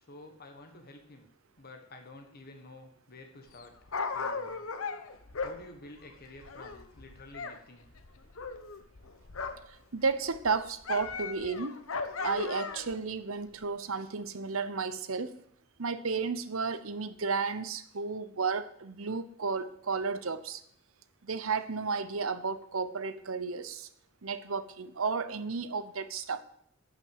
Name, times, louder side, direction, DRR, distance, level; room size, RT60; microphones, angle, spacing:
voice 1, 0.1-1.3 1.6-3.7 4.1-4.7 5.4-7.9, left 2 dB, 45° left, 4 dB, 1.5 m, -50 dB
Dog, 3.5-7.6 7.8-9.8 10.1-13.0 13.6-13.7, left 4 dB, 75° left, 1.1 m, -37 dB
voice 2, 9.9-11.8 12.2-15.3 15.8-20.6 21.2-23.9 24.2-26.4, right 4 dB, 75° right, 13 dB, 0.9 m, -33 dB
12.0 x 6.1 x 7.9 m, 0.68 s
head